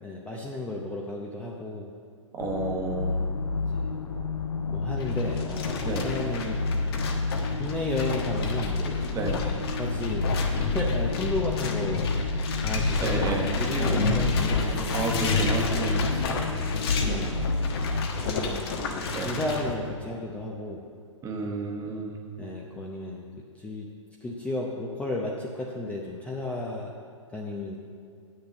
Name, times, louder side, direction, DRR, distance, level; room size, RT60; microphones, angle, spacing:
voice 1, 0.0-1.9 3.6-3.9 4.7-6.6 7.5-9.0 9.8-10.3 10.7-12.2 12.6-13.2 13.6-14.9 17.0-17.4 18.2-20.8 22.4-23.3 23.6-23.9 24.2-26.9 27.3-27.8, left 2 dB, 5° left, -2 dB, 0.7 m, -33 dB
voice 2, 2.3-3.1 5.8-6.1 9.1-9.4 13.0-14.1 14.9-16.1 19.1-19.3 21.2-22.1, right 3 dB, 20° right, 1 dB, 1.2 m, -31 dB
sound 1, 2.4-18.1, left 3 dB, 80° left, 0.9 m, -30 dB
sound 2, 5.0-19.7, left 3 dB, 50° left, 1.2 m, -30 dB
8.5 x 6.6 x 7.1 m, 2.4 s
figure-of-eight pair, 120°, 17 cm